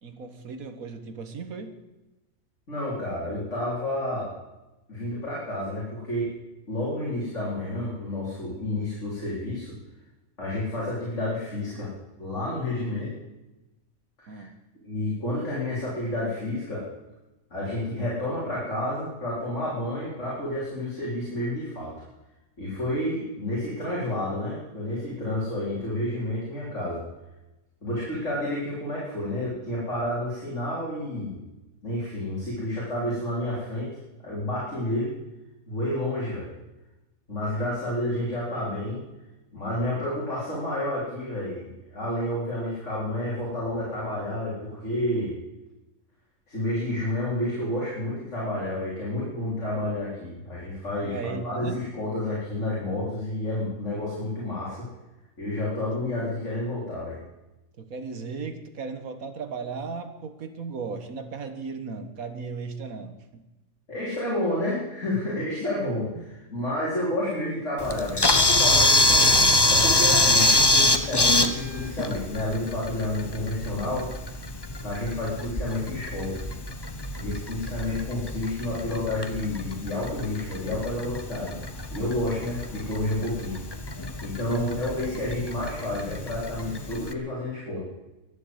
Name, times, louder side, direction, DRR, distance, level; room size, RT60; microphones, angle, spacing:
voice 1, 0.0-1.8 14.3-14.5 37.5-37.7 51.0-51.8 57.8-63.4 66.1-66.3 84.4-85.3, right 5 dB, 75° right, 9 dB, 1.9 m, -36 dB
voice 2, 2.7-4.3 4.9-6.3 6.7-9.7 10.4-11.9 12.2-13.1 14.2-14.4 14.8-16.8 17.5-21.9 22.6-27.0 27.8-31.4 31.8-33.9 34.2-35.1 35.7-36.5 37.3-39.0 39.5-45.4 46.5-54.9 55.4-57.2 63.9-74.1 74.8-76.4 77.2-81.6 81.9-83.6 84.2-87.8, left 1 dB, 55° left, -6 dB, 4.7 m, -30 dB
Camera, 67.8-87.1, left 2 dB, 20° left, 0.9 m, -25 dB
22.5 x 7.6 x 8.1 m, 1.0 s
omnidirectional pair, 1.5 m